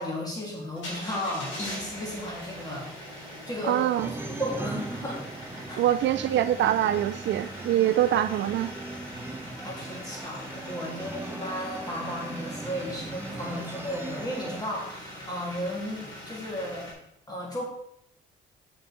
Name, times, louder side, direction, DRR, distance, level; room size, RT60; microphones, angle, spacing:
voice 1, 0.0-2.9 3.2-5.2 5.7-5.8 9.6-16.9 17.3-17.6, equal, 20° left, -3 dB, 3.3 m, -34 dB
sound 1, 0.7-16.9, left 1 dB, 70° left, 3.5 m, -42 dB
sound 2, 1.4-14.6, right 3 dB, 10° right, 0.4 m, -40 dB
voice 2, 3.7-4.1 5.8-8.7, right 12 dB, 70° right, 12 dB, 0.5 m, -24 dB
7.4 x 6.3 x 4.3 m, 0.76 s
cardioid pair, 90°, 20 cm